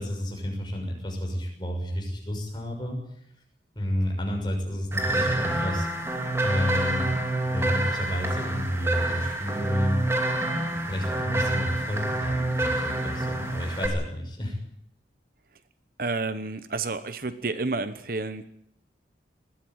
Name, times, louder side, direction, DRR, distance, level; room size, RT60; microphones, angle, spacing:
voice 1, 0.0-3.0 3.7-5.9 6.4-7.1 7.4-10.0 10.9-14.6, equal, 25° left, 1 dB, 6.4 m, -30 dB
sound 1, 4.9-13.9, right 2 dB, 15° right, 2.6 m, -28 dB
voice 2, 16.0-18.5, right 3 dB, 50° right, 12 dB, 0.9 m, -30 dB
20.0 x 14.0 x 9.5 m, 0.73 s
head